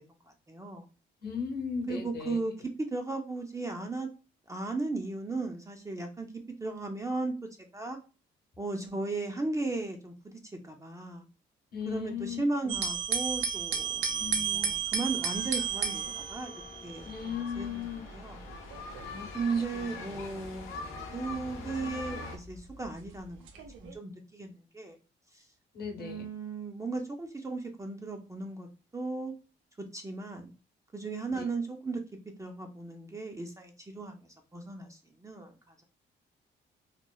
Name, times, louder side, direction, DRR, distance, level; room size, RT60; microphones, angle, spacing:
voice 1, 0.5-0.9 1.9-4.1 4.5-6.3 6.6-7.3 7.7-8.0 8.6-11.3 11.9-16.5 16.8-17.8 18.1-18.4 19.3-25.0 25.3-25.4 26.0-28.7 28.9-29.3 29.9-30.5 30.9-32.0 32.4-35.8, right 3 dB, 15° right, 3 dB, 0.4 m, -36 dB
voice 2, 1.2-2.4 11.7-12.4 14.2-14.7 17.0-18.1 19.0-19.3 19.7-19.8 20.2-20.4 25.7-26.3 31.3-31.4, left 6 dB, 50° left, 3 dB, 0.9 m, -37 dB
sound 1, 12.7-22.8 23.5-23.9, right 7 dB, 85° right, 0.6 m, -34 dB
sound 2, 15.1-22.4, left 3 dB, 90° left, 0.6 m, -44 dB
3.0 x 2.0 x 2.2 m, 0.33 s
cardioid pair, 90°, 20 cm